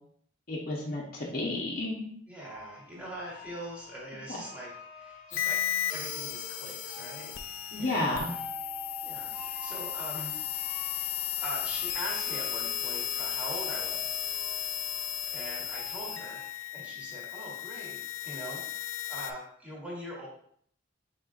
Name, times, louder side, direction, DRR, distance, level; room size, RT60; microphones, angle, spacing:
voice 1, 0.5-2.1 7.7-8.3, left 2 dB, 50° left, -4 dB, 0.8 m, -31 dB
voice 2, 2.3-5.6 5.9-7.3 7.8-8.2 9.0-10.3 11.4-14.2 15.3-18.6 18.9-20.3, right 1 dB, 5° right, -6 dB, 1.3 m, -42 dB
sound 1, 2.4-16.5, left 3 dB, 30° left, 1.0 m, -47 dB
sound 2, 5.3-19.3, left 10 dB, 75° left, 0.4 m, -35 dB
5.3 x 3.7 x 2.4 m, 0.64 s
head